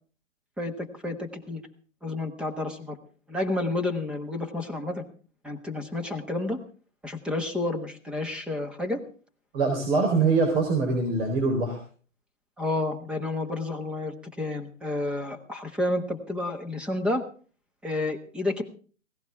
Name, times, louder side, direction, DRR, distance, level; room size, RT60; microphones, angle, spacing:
voice 1, 0.6-1.6 2.0-3.0 3.3-5.0 5.4-6.6 7.0-9.0 12.6-17.2 17.8-18.6, left 2 dB, 5° right, 4 dB, 1.3 m, -30 dB
voice 2, 9.5-11.8, right 3 dB, 50° right, 2 dB, 4.3 m, -23 dB
17.0 x 17.0 x 3.6 m, 0.40 s
hypercardioid pair, 140°, 38 cm